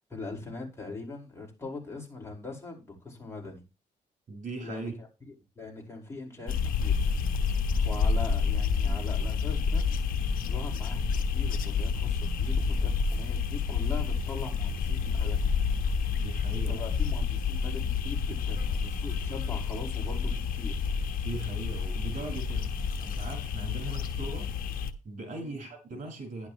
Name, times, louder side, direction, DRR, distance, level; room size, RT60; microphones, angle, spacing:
voice 1, 0.1-3.6 4.6-7.0 7.8-9.9 10.5-15.5 16.7-20.8 25.4-25.6, left 3 dB, 20° left, 5.1 m, -41 dB
voice 2, 4.3-4.9 16.1-16.8 21.2-24.5 25.0-26.5, right 3 dB, 65° right, 5.5 m, -39 dB
sound 1, 6.5-24.9, left 5 dB, 80° left, 1.3 m, -29 dB
12.0 x 11.0 x 3.1 m
cardioid pair, 125°, 14 cm